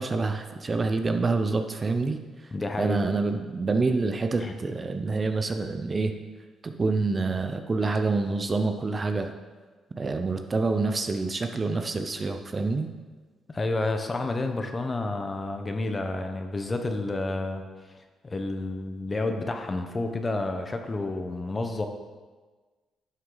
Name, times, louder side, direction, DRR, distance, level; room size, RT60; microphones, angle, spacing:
voice 1, 0.0-2.2 2.8-6.1 6.6-9.3 10.0-12.9, right 3 dB, 30° right, 7 dB, 0.6 m, -27 dB
voice 2, 2.5-3.1 4.4-4.5 13.5-17.6 18.2-21.9, left 2 dB, 25° left, 6 dB, 1.0 m, -30 dB
11.0 x 6.1 x 4.0 m, 1.4 s
cardioid pair, 90°, 0 cm